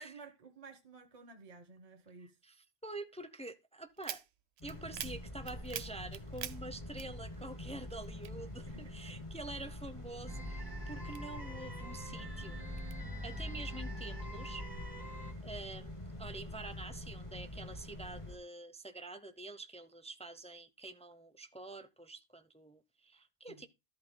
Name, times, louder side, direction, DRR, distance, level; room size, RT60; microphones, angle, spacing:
voice 1, 0.0-2.4 8.4-9.3 23.5-23.6, right 4 dB, 40° right, 1.0 m, -54 dB
voice 2, 2.2-4.2 4.6-12.6 13.2-14.6 15.4-23.7, right 2 dB, 5° left, 0.7 m, -47 dB
sound 1, 4.0-7.6 7.9-9.2 9.6-11.7 12.2-13.0, right 10 dB, 80° right, 0.9 m, -46 dB
sound 2, 4.6-18.4, left 1 dB, 30° left, 2.1 m, -46 dB
sound 3, 10.3-15.3, equal, 20° right, 2.0 m, -44 dB
14.0 x 8.3 x 2.2 m
omnidirectional pair, 1.1 m